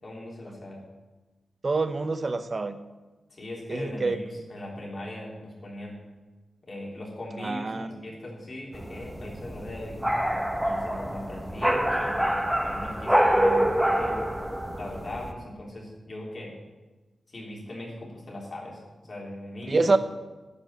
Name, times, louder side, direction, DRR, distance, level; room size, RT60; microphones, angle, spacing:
voice 1, 0.0-0.8 3.3-6.0 6.6-10.0 10.6-14.2 14.7-16.5 17.3-19.8, left 1 dB, 40° left, -3 dB, 3.2 m, -39 dB
voice 2, 1.6-2.8 3.7-4.2 7.4-7.9 19.7-20.0, right 3 dB, 35° right, 10 dB, 0.7 m, -26 dB
sound 1, 8.7-15.3, right 1 dB, 5° right, 1.0 m, -26 dB
12.0 x 5.2 x 8.7 m, 1.2 s
wide cardioid pair, 130°, 0 cm